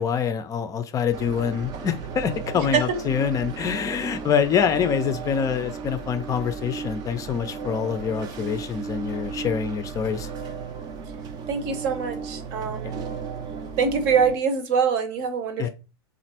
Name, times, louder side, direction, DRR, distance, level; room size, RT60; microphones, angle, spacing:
voice 1, 0.0-10.3 12.8-12.9 15.6-15.7, left 7 dB, 25° left, 9 dB, 0.5 m, -25 dB
sound 1, 1.1-14.4, right 5 dB, 30° right, 0.6 m, -35 dB
voice 2, 11.5-13.0 13.8-15.7, right 6 dB, 50° right, 9 dB, 0.9 m, -24 dB
3.2 x 2.5 x 4.2 m, 0.31 s
hypercardioid pair, 100°, 14 cm